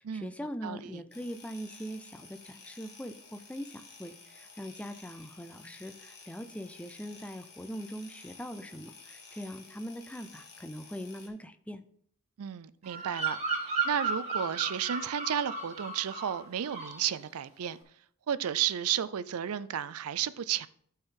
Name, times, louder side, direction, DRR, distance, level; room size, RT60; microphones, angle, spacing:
voice 1, 0.0-11.8, equal, 5° left, 0.4 m, -42 dB
voice 2, 0.6-1.0 12.4-13.6 13.8-17.8 18.3-20.7, right 9 dB, 80° right, 0.4 m, -33 dB
sound 1, 1.1-11.3, left 4 dB, 50° left, 1.6 m, -53 dB
Bird vocalization bird call bird song, 12.8-16.4 16.6-17.1, right 4 dB, 30° right, 2.0 m, -34 dB
13.0 x 4.5 x 3.8 m
head